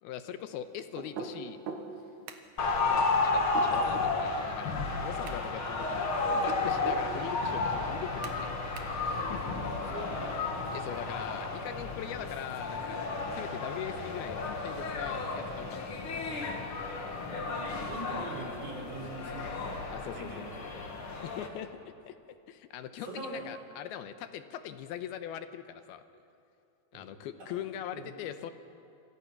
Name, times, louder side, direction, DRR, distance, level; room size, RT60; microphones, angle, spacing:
voice 1, 0.0-1.6 2.9-8.7 9.0-9.7 10.7-13.0 13.3-16.0 19.9-20.5 21.2-26.0 26.9-28.5, left 10 dB, 80° left, 10 dB, 2.8 m, -41 dB
sound 1, 1.0-1.9 3.4-4.1 6.3-7.1, right 5 dB, 85° right, 3.8 m, -39 dB
sound 2, 2.3-2.6 4.9-5.5 6.0-6.1 8.2-9.0, right 8 dB, 70° right, 3.0 m, -49 dB
sound 3, 2.6-21.5, left 3 dB, 40° left, 2.2 m, -33 dB
voice 2, 9.2-10.4 17.2-19.5 20.1-20.8 23.0-23.4 26.9-27.1 27.4-28.1, right 2 dB, 55° right, -1 dB, 5.9 m, -43 dB
27.5 x 26.5 x 6.0 m, 2.5 s
omnidirectional pair, 4.5 m